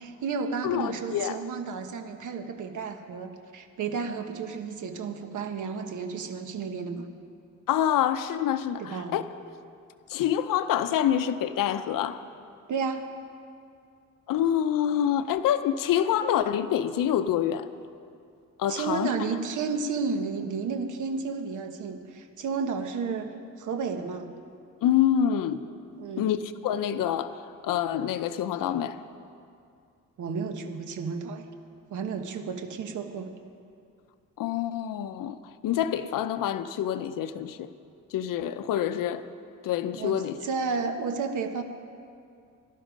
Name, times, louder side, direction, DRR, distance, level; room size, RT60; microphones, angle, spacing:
voice 1, 0.0-7.1 8.8-9.2 12.7-13.1 18.7-23.3 23.6-24.3 26.0-26.3 30.2-31.5 31.9-33.3 39.9-41.6, right 5 dB, 65° right, 6 dB, 1.2 m, -32 dB
voice 2, 0.6-1.4 7.7-9.2 10.1-12.2 14.3-17.7 18.6-19.1 24.8-25.6 26.2-26.4 26.6-29.0 34.4-35.4 35.6-37.7 38.1-39.2 39.6-40.4, left 10 dB, 85° left, 11 dB, 0.7 m, -26 dB
17.5 x 12.0 x 5.2 m, 2.4 s
wide cardioid pair, 175°, 32 cm